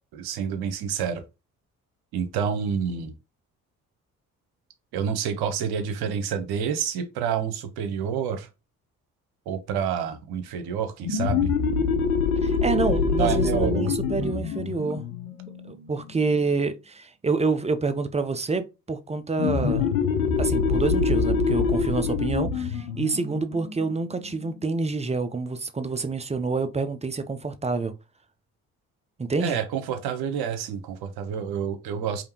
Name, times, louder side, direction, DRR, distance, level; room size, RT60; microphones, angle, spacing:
voice 1, 0.1-1.2 2.1-3.1 4.9-8.5 9.5-11.5 13.2-14.3 29.4-32.2, right 7 dB, 60° right, 1.0 m, -28 dB
sound 1, 11.0-16.3 19.4-24.7, left 5 dB, 80° left, 0.7 m, -25 dB
voice 2, 12.4-15.1 15.6-19.9 20.4-27.9 29.2-29.6, right 4 dB, 15° right, 0.6 m, -27 dB
5.0 x 2.7 x 2.8 m
figure-of-eight pair, 45°, 43 cm